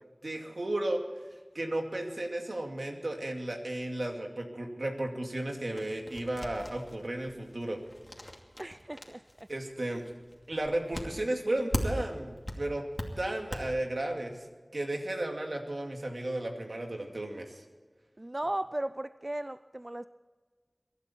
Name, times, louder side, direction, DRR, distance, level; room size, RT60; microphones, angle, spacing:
voice 1, 0.2-1.0 1.5-7.8 9.5-10.0 10.5-12.8 13.2-14.4 14.7-17.6, right 1 dB, 80° right, 2 dB, 2.4 m, -34 dB
sound 1, 5.8-12.2 12.5-13.6, left 1 dB, 30° left, 2.5 m, -39 dB
voice 2, 8.6-9.5 18.2-20.1, right 1 dB, 40° right, 13 dB, 0.4 m, -36 dB
23.0 x 11.5 x 4.5 m, 1.4 s
wide cardioid pair, 45°, 0 cm